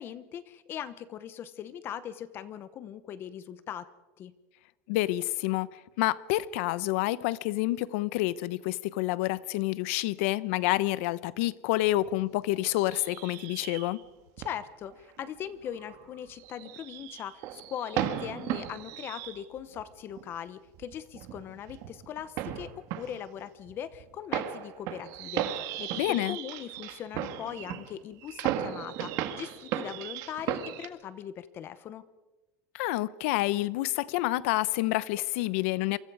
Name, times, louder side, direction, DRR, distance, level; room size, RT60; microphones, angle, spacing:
voice 1, 0.0-3.9 4.2-4.3 14.4-32.0, left 9 dB, 30° left, 0.9 m, -40 dB
voice 2, 4.9-14.0 26.0-26.4 32.7-36.0, left 17 dB, 75° left, 0.9 m, -28 dB
sound 1, 11.9-12.3 12.9-14.1 14.4-14.5 14.9-19.9 20.1-20.3 20.7-30.9, right 11 dB, 50° right, 2.0 m, -36 dB
28.0 x 24.5 x 4.9 m
cardioid pair, 170°, 7 cm